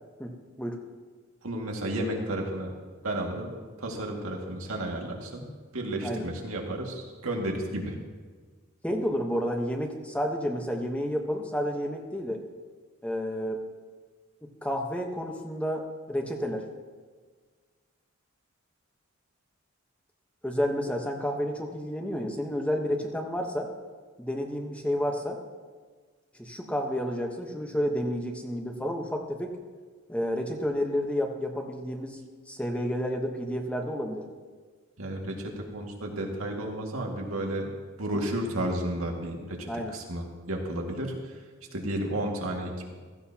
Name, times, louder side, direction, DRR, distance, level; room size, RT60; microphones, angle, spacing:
voice 1, 0.2-0.8 6.0-6.2 8.8-12.4 13.0-13.6 14.4-16.7 20.4-23.7 24.2-25.4 26.4-29.5 30.1-32.2 32.5-34.2 39.7-39.9, equal, 5° left, 2 dB, 1.1 m, -30 dB
voice 2, 1.4-2.7 3.0-3.5 3.8-5.5 5.7-8.0 35.0-37.7 38.0-41.4 41.7-43.0, right 1 dB, 90° right, 0 dB, 2.1 m, -32 dB
15.5 x 15.0 x 2.9 m, 1.5 s
head